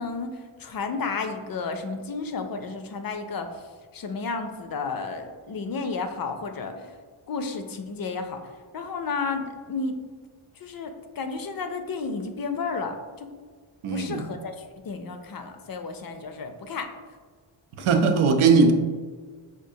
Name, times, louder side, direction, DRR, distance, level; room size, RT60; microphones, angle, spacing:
voice 1, 0.0-3.6 3.9-6.9 7.3-8.4 8.7-10.0 10.6-13.3 13.9-14.6 14.8-16.9 17.8-17.9, left 4 dB, 50° left, 6 dB, 0.4 m, -32 dB
voice 2, 13.8-14.2 17.8-18.7, right 4 dB, 80° right, 6 dB, 0.6 m, -19 dB
5.0 x 2.4 x 2.7 m, 1.5 s
cardioid pair, 65°, 49 cm